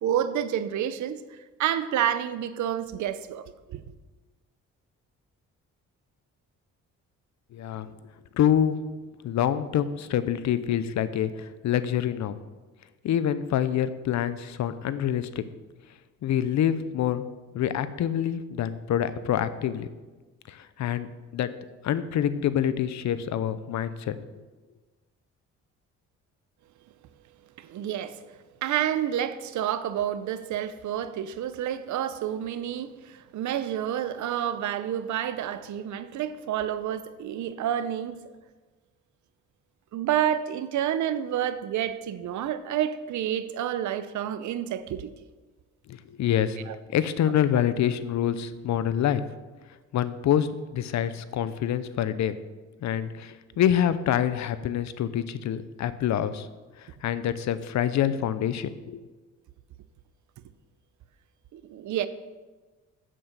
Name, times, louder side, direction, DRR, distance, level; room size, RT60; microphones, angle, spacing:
voice 1, 0.0-1.2 1.6-3.8 27.6-28.2 28.6-38.2 39.9-45.1 46.7-46.8 61.5-62.1, right 10 dB, 70° right, 0.8 m, -29 dB
voice 2, 7.5-7.9 8.3-8.7 9.2-12.4 13.0-15.3 16.2-17.3 17.5-19.9 20.5-21.1 21.3-21.5 21.8-24.2 45.9-46.6 46.9-49.2 49.9-50.5 50.7-52.4 52.8-56.5 57.0-59.0, left 10 dB, 65° left, 0.7 m, -26 dB
8.1 x 7.5 x 6.6 m
cardioid pair, 90°, 30 cm